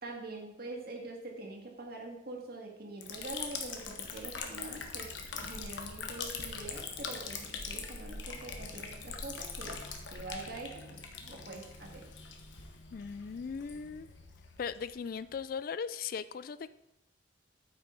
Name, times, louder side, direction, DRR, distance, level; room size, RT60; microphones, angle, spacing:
voice 1, 0.0-9.8 10.1-10.9 11.2-12.1, right 2 dB, 55° right, 0 dB, 2.0 m, -44 dB
Liquid, 3.0-15.5, left 5 dB, 80° left, 1.3 m, -42 dB
voice 2, 12.9-14.1 14.6-16.7, left 6 dB, 50° left, 15 dB, 0.3 m, -38 dB
8.9 x 8.9 x 4.0 m, 0.85 s
head